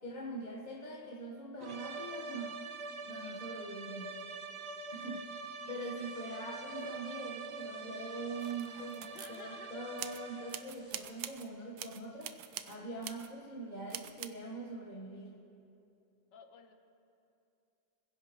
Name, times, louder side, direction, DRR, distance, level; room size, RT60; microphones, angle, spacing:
voice 1, 0.0-2.6 3.0-4.2 4.9-15.3, right 2 dB, 25° left, -3 dB, 1.3 m, -43 dB
sound 1, 1.6-10.8, right 3 dB, 55° right, 0.7 m, -44 dB
voice 2, 3.2-3.5 5.6-6.1 9.1-9.7 10.3-10.5 16.3-16.7, left 6 dB, 70° left, 5 dB, 1.7 m, -56 dB
sound 2, 6.0-11.3, right 1 dB, 85° right, 5.0 m, -65 dB
sound 3, 8.4-9.4 10.0-10.2 10.5-11.5 11.8-12.8 13.0-13.3 13.9-14.3, right 11 dB, 70° right, 1.1 m, -44 dB
26.5 x 16.0 x 3.1 m, 2.7 s
omnidirectional pair, 2.0 m